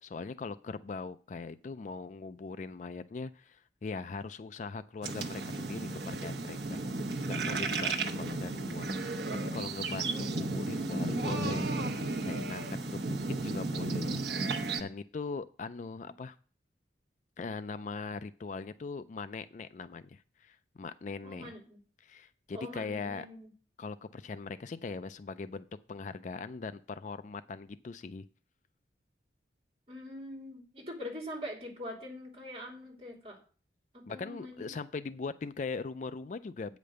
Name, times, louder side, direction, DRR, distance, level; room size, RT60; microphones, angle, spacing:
voice 1, 0.0-6.8 7.2-9.2 9.5-11.7 12.2-12.7 12.9-14.5 14.8-16.4 17.4-21.5 22.0-23.3 23.8-28.2 34.1-36.8, left 4 dB, 40° left, 13 dB, 0.3 m, -40 dB
sound 1, 5.0-14.8, right 3 dB, 60° right, 1.0 m, -34 dB
voice 2, 10.0-10.5 16.0-16.1 21.2-21.8 22.5-23.5 29.9-33.4 33.9-34.7, left 1 dB, 35° right, 0 dB, 2.9 m, -44 dB
8.7 x 5.1 x 6.6 m, 0.40 s
head